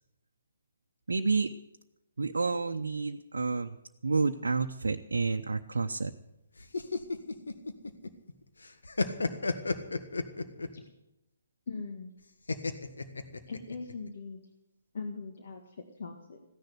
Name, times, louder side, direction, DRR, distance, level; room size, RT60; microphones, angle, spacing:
voice 1, 1.1-1.5 2.2-3.8 4.0-6.1, right 4 dB, 70° right, 4 dB, 0.8 m, -29 dB
sound 1, 6.6-8.3 8.6-10.8 12.5-13.9, left 3 dB, 75° left, 1.6 m, -32 dB
voice 2, 11.7-12.1 13.5-14.4 14.9-16.4, left 4 dB, 55° left, 3 dB, 1.9 m, -40 dB
15.5 x 10.5 x 8.1 m, 0.91 s
figure-of-eight pair, 135°, 0 cm